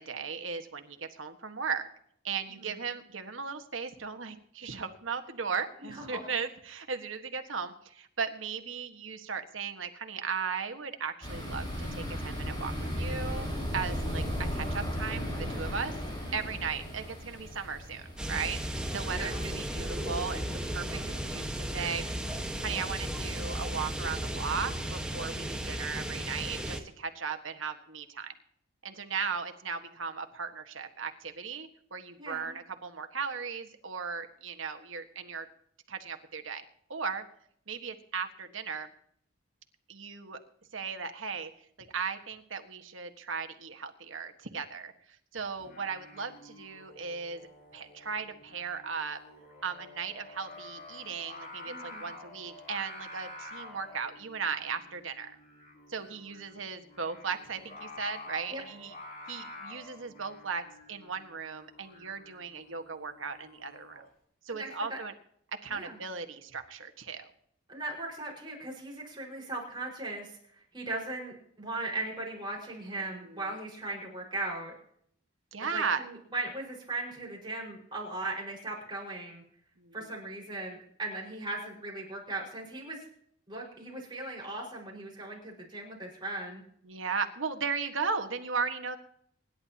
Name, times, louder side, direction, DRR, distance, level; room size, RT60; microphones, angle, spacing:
voice 1, 0.0-1.9 2.2-14.2 14.5-15.9 16.3-20.4 20.7-22.0 22.6-28.3 28.8-35.5 35.9-36.6 36.9-37.2 37.7-38.9 39.9-40.4 40.7-41.5 41.9-44.9 45.3-47.5 47.7-49.2 49.6-55.4 55.9-58.9 59.3-64.0 64.4-65.1 65.6-67.3 73.2-73.4 75.5-76.0 79.8-80.0 86.8-89.0, right 5 dB, 85° right, 6 dB, 1.5 m, -36 dB
voice 2, 5.9-6.3 16.3-16.5 19.1-19.5 32.2-32.6 51.7-52.1 58.5-58.6 64.5-65.0 65.7-66.0 67.7-70.4 70.7-74.7 75.7-79.4 79.9-83.0 83.5-86.6, right 2 dB, 25° right, -3 dB, 5.2 m, -38 dB
sound 1, 11.2-21.4, equal, 25° left, 4.7 m, -36 dB
sound 2, 18.2-26.8, equal, 5° right, 1.3 m, -35 dB
Singing, 45.6-64.1, left 2 dB, 45° left, 3.7 m, -49 dB
26.0 x 11.0 x 2.9 m, 0.67 s
head